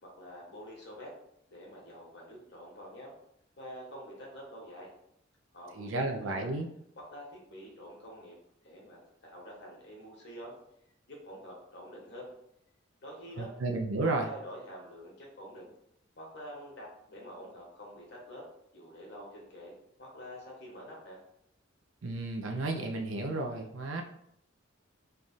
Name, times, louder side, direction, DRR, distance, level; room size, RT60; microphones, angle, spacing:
voice 1, 0.0-1.1 1.5-3.1 3.6-4.9 5.5-6.6 7.1-8.4 8.6-10.5 11.1-12.3 13.0-13.5 14.0-15.7 16.2-18.4 18.7-21.2, equal, 60° left, -3 dB, 1.2 m, -47 dB
voice 2, 5.8-6.7 13.4-14.3 22.0-24.0, right 2 dB, 85° right, 3 dB, 0.5 m, -32 dB
3.3 x 2.3 x 4.0 m, 0.74 s
head